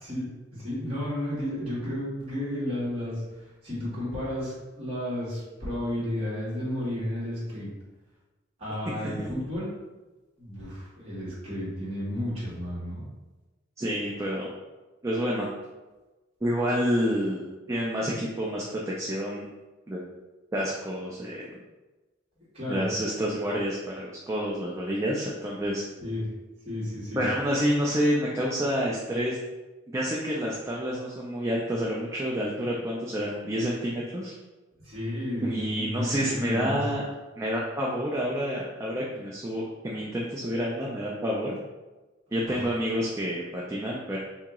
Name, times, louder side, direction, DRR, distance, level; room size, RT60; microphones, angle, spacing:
voice 1, 0.0-7.7 8.6-9.7 10.4-13.0 22.5-22.9 26.0-26.2 26.6-27.2 34.8-36.8 42.4-42.6, left 1 dB, 30° right, -8 dB, 1.5 m, -32 dB
voice 2, 8.8-9.3 13.8-14.5 15.0-15.5 16.4-19.5 19.9-20.1 20.5-21.5 22.7-25.8 27.2-29.4 29.9-34.3 35.4-37.1 37.4-41.6 42.3-44.2, equal, 15° right, -4 dB, 0.4 m, -28 dB
2.9 x 2.8 x 3.6 m, 1.2 s
head